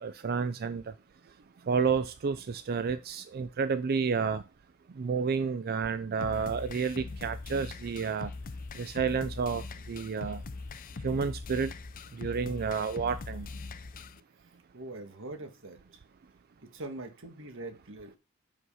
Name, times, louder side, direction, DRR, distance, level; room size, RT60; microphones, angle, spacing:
voice 1, 0.0-0.9 1.7-4.4 4.9-8.3 8.7-10.4 11.0-11.7 12.1-13.5, right 5 dB, 45° right, 13 dB, 0.4 m, -30 dB
sound 1, 6.2-14.2, left 3 dB, 40° left, 0.5 m, -41 dB
voice 2, 14.4-16.0 16.6-18.2, right 2 dB, 65° right, 5 dB, 1.8 m, -43 dB
6.2 x 5.5 x 5.6 m, 0.31 s
head